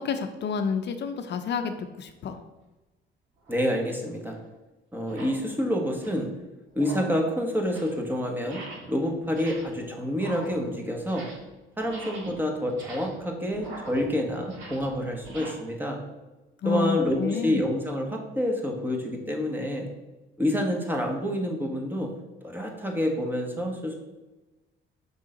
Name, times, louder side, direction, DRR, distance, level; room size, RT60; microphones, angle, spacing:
voice 1, 0.0-2.4 16.6-17.6, left 5 dB, 60° left, 7 dB, 0.6 m, -29 dB
sound 1, 3.4-3.6 4.3-4.4 5.0-5.4 5.8-6.3 6.7-7.2 7.5-8.0 8.4-9.0 9.2-9.8 10.1-11.5 11.8-15.5, right 2 dB, 90° right, 1.8 m, -43 dB
voice 2, 3.5-4.4 4.9-6.3 6.7-8.6 8.9-11.3 11.8-16.0 16.6-19.9 20.4-22.1 22.4-23.9, equal, 10° right, 1 dB, 1.3 m, -28 dB
5.5 x 3.7 x 5.0 m, 1.1 s
cardioid pair, 90°, 20 cm